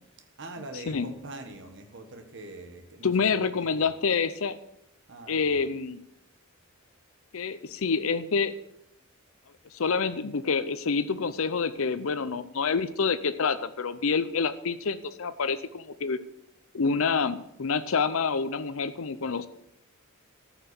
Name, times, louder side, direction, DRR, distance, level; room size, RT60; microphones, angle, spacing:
voice 1, 0.0-3.9 5.1-5.6, right 2 dB, 60° right, 6 dB, 1.6 m, -44 dB
voice 2, 3.0-4.6 5.3-6.0 7.3-8.5 9.7-16.2 16.7-19.5, left 5 dB, 70° left, 12 dB, 0.6 m, -27 dB
14.0 x 5.9 x 6.9 m, 0.77 s
head